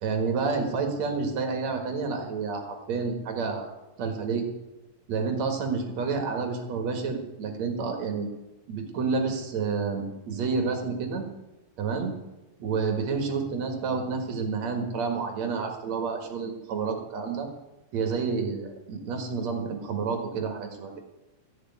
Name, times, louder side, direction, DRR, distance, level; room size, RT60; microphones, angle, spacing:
voice 1, 0.0-3.7 4.0-4.4 5.1-8.3 8.7-11.3 11.8-12.1 12.6-17.5 17.9-20.9, right 5 dB, 55° right, 4 dB, 2.7 m, -29 dB
14.5 x 6.6 x 9.5 m, 1.0 s
omnidirectional pair, 4.1 m